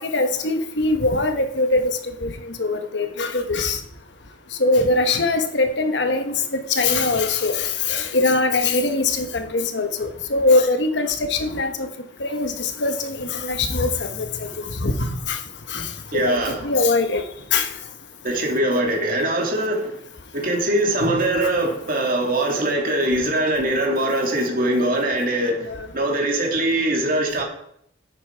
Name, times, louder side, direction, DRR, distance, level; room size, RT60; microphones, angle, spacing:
voice 1, 0.0-1.9 2.2-3.8 4.6-11.9 12.2-15.4 15.7-15.9 16.2-16.3 16.6-17.2 17.5-17.7 21.0-21.5 25.7-25.9, left 3 dB, 70° left, 7 dB, 1.2 m, -22 dB
voice 2, 16.1-16.6 18.2-20.0 20.3-27.4, right 1 dB, 50° right, 0 dB, 2.7 m, -22 dB
10.5 x 8.4 x 4.7 m, 0.71 s
head